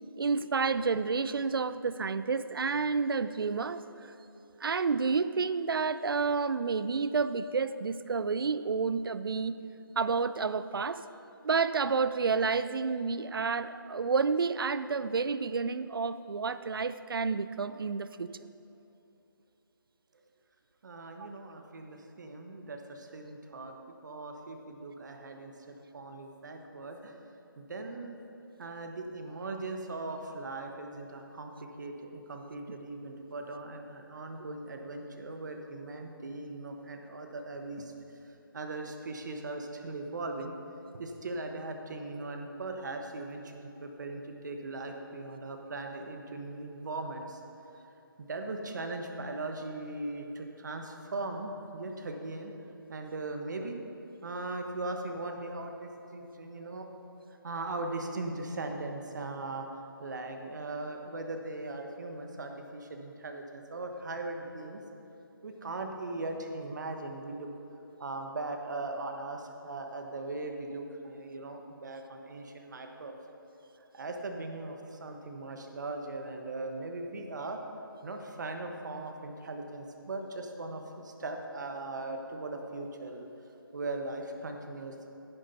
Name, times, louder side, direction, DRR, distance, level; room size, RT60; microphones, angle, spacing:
voice 1, 0.2-3.8 4.6-9.6 10.0-11.1 11.4-18.3 21.2-21.3, right 5 dB, 75° right, 14 dB, 0.5 m, -30 dB
voice 2, 20.8-23.7 24.0-27.2 27.6-28.2 28.6-37.9 38.2-40.5 40.9-47.4 48.2-52.5 52.9-53.8 54.2-56.9 57.4-59.7 60.0-64.8 65.4-67.5 68.0-73.1 73.9-77.6 78.0-83.3 83.7-84.9, right 2 dB, 55° right, 4 dB, 1.2 m, -39 dB
10.5 x 9.9 x 4.2 m, 3.0 s
hypercardioid pair, 165°, 12 cm